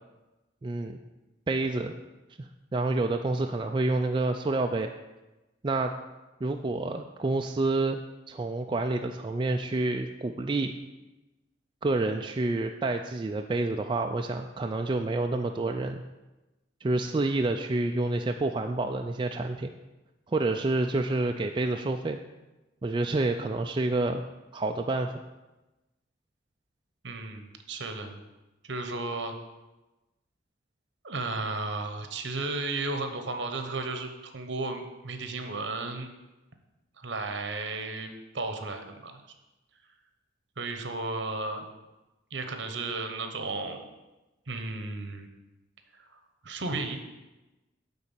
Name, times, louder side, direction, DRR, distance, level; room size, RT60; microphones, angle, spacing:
voice 1, 0.6-1.0 1.5-2.0 2.4-4.9 5.6-5.9 6.4-8.0 8.3-10.7 11.8-16.0 16.8-19.7 20.3-22.2 22.8-24.2 24.5-25.1, right 2 dB, 25° right, 4 dB, 0.3 m, -28 dB
voice 2, 27.0-28.2 28.6-29.4 31.0-36.1 37.0-39.2 40.6-41.7 42.3-43.8 44.5-45.3 45.9-46.1 46.4-47.0, right 3 dB, 65° right, 7 dB, 1.1 m, -34 dB
9.5 x 4.0 x 7.3 m, 1.1 s
head